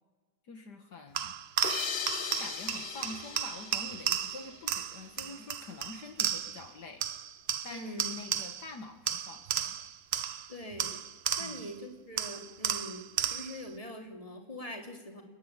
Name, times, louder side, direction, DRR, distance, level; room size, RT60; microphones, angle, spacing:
voice 1, 0.4-1.3 2.2-7.0 7.6-9.9 11.4-11.7, left 3 dB, 60° left, 6 dB, 2.0 m, -46 dB
sound 1, 1.2-6.7 7.0-8.7 9.1-11.8 12.2-13.7, right 9 dB, 65° right, 0.6 m, -34 dB
sound 2, 1.6-5.0, left 7 dB, 45° left, 0.9 m, -39 dB
voice 2, 7.7-8.2 10.5-11.0 11.4-15.2, equal, 20° left, 3 dB, 3.2 m, -43 dB
30.0 x 10.0 x 8.9 m, 1.3 s
omnidirectional pair, 2.0 m